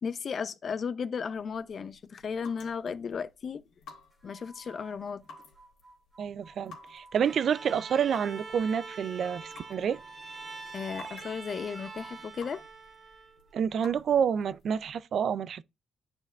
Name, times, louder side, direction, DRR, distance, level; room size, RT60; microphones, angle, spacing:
voice 1, 0.0-3.6 4.2-5.2 10.7-12.6, left 6 dB, 50° left, 0.5 m, -35 dB
sound 1, 1.2-14.7, left 4 dB, 80° left, 2.0 m, -55 dB
sound 2, 4.1-12.3, right 2 dB, 15° right, 2.2 m, -54 dB
voice 2, 6.2-10.0 13.5-15.6, right 7 dB, 60° right, 0.3 m, -28 dB
Bowed string instrument, 7.2-13.5, right 4 dB, 35° right, 1.2 m, -45 dB
10.5 x 4.4 x 2.3 m
cardioid pair, 90°, 0 cm